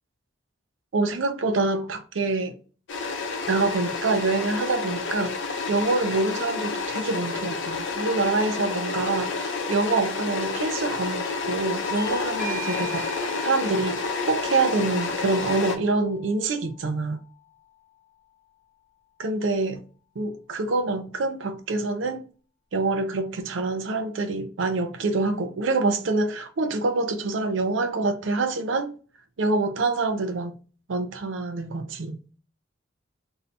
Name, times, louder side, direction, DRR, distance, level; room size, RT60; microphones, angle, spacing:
voice 1, 0.9-2.5 3.5-13.1 13.4-17.2 19.2-19.8 20.2-22.2 22.7-28.9 29.4-30.5 30.9-32.2, right 3 dB, 75° right, 0.5 m, -26 dB
sound 1, 2.9-15.8, left 4 dB, 70° left, 0.6 m, -30 dB
Bell / Doorbell, 11.9-17.1, left 1 dB, 45° right, 1.1 m, -40 dB
2.7 x 2.7 x 3.2 m
head